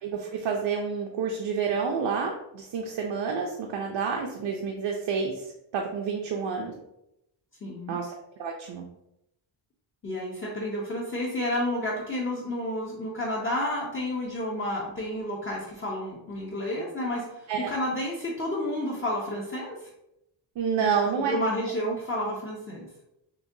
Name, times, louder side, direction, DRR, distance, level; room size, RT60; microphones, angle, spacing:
voice 1, 0.0-5.5 5.7-6.7 7.9-8.8 17.5-17.7 20.6-21.4, right 6 dB, 65° right, 1 dB, 0.6 m, -29 dB
voice 2, 7.6-8.0 10.0-19.8 20.8-20.9 21.2-22.9, left 1 dB, 25° left, -5 dB, 0.5 m, -30 dB
5.9 x 2.2 x 2.6 m, 0.84 s
wide cardioid pair, 175°, 47 cm